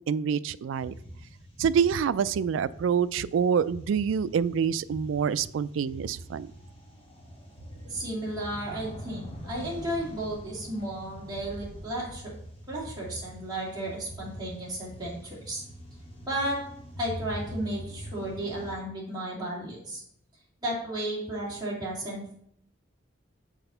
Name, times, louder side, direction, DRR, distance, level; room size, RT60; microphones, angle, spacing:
voice 1, 0.1-0.9 1.6-6.5, right 7 dB, 85° right, 17 dB, 0.3 m, -26 dB
sound 1, 0.7-18.7, equal, 30° left, 1.4 m, -44 dB
voice 2, 7.8-12.3 12.7-15.6 16.3-16.6 17.0-20.0 20.6-22.3, right 1 dB, 20° right, -5 dB, 2.5 m, -33 dB
6.1 x 4.3 x 5.5 m, 0.69 s
head